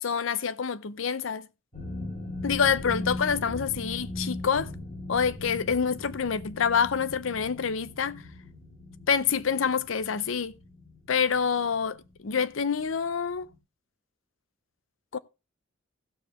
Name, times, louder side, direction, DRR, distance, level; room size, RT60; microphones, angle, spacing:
voice 1, 0.0-1.5 2.4-4.7 5.1-8.2 9.1-10.5 11.1-13.5 15.1-15.2, left 6 dB, 70° left, 0.6 m, -27 dB
sound 1, 1.7-12.4 12.7-13.1 13.4-13.6, left 2 dB, 35° left, 2.4 m, -39 dB
16.0 x 7.0 x 3.0 m
head